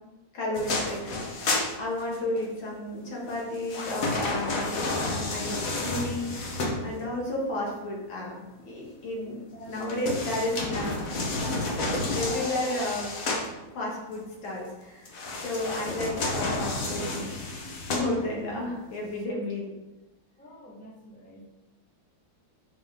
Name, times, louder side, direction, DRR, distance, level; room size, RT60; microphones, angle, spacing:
voice 1, 0.3-6.5 6.8-9.4 9.7-11.4 12.1-13.1 13.7-17.4 17.9-19.7, left 1 dB, 70° left, -3 dB, 2.5 m, -32 dB
sound 1, 0.5-2.4 3.3-7.2 9.7-13.5 15.0-18.5 19.1-19.2, left 2 dB, 50° left, 1.2 m, -31 dB
voice 2, 9.5-10.2 20.4-21.5, equal, 5° left, -3 dB, 0.7 m, -46 dB
7.5 x 4.8 x 3.6 m, 1.1 s
omnidirectional pair, 2.3 m